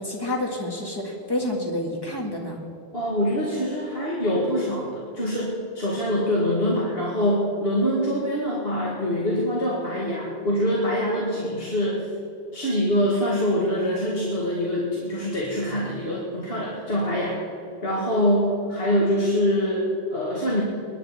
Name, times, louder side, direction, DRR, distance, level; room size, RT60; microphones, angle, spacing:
voice 1, 0.0-2.6, left 1 dB, 20° left, 0 dB, 1.9 m, -29 dB
voice 2, 2.9-12.1 12.5-17.4 17.8-20.6, equal, 60° left, -5 dB, 2.3 m, -24 dB
21.0 x 11.0 x 4.3 m, 2.6 s
omnidirectional pair, 1.1 m